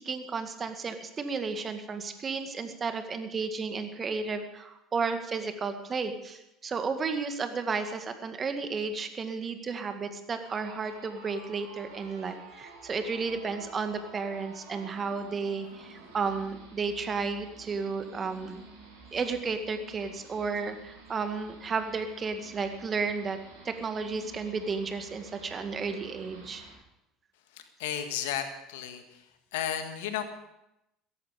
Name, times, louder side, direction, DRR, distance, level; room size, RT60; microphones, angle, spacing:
voice 1, 0.0-18.6 19.1-23.4 23.6-26.6, right 4 dB, 35° right, 7 dB, 2.1 m, -33 dB
sound 1, 10.4-26.7, right 3 dB, 70° right, 5.5 m, -51 dB
voice 2, 27.5-29.2 29.5-30.2, left 10 dB, 70° left, 7 dB, 1.8 m, -34 dB
16.5 x 14.5 x 5.3 m, 0.85 s
hypercardioid pair, 65°, 0 cm